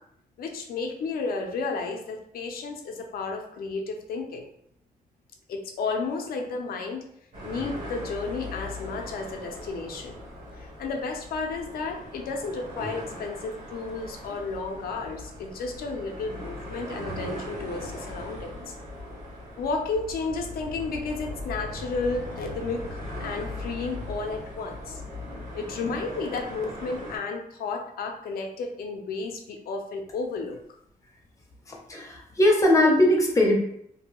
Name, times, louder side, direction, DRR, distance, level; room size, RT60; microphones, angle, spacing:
voice 1, 0.4-4.5 5.5-7.0 7.4-10.2 10.6-18.7 19.6-25.0 25.5-30.6, left 4 dB, 85° left, 2 dB, 0.5 m, -32 dB
sound 1, 7.3-27.2, left 1 dB, 60° right, 1.1 m, -39 dB
voice 2, 31.7-33.6, left 1 dB, 20° left, 0 dB, 0.5 m, -20 dB
2.6 x 2.2 x 2.9 m, 0.69 s
wide cardioid pair, 170°, 15 cm